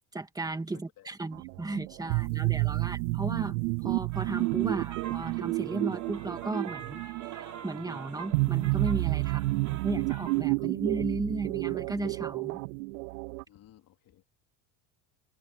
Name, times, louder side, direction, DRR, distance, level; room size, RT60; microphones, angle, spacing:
voice 1, 0.1-3.6 3.8-12.6, right 2 dB, 10° right, 1.9 m, -35 dB
voice 2, 0.7-1.1 9.3-9.6 10.6-10.7 13.5-14.2, left 13 dB, 45° left, 3.4 m, -58 dB
sound 1, 1.3-13.4, right 27 dB, 85° right, 0.5 m, -30 dB
sound 2, 4.1-10.4, right 8 dB, 40° right, 3.8 m, -46 dB
open air
supercardioid pair, 115°, 46 cm